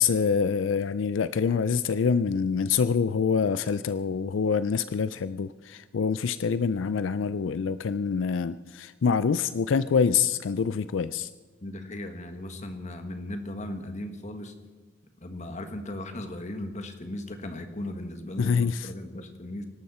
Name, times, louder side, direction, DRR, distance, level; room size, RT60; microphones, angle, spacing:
voice 1, 0.0-11.3 18.4-18.9, left 6 dB, 85° left, 15 dB, 0.4 m, -26 dB
voice 2, 11.6-14.5 15.2-18.5 18.8-19.6, left 1 dB, 40° left, 6 dB, 1.6 m, -37 dB
24.5 x 12.5 x 4.3 m, 1.4 s
head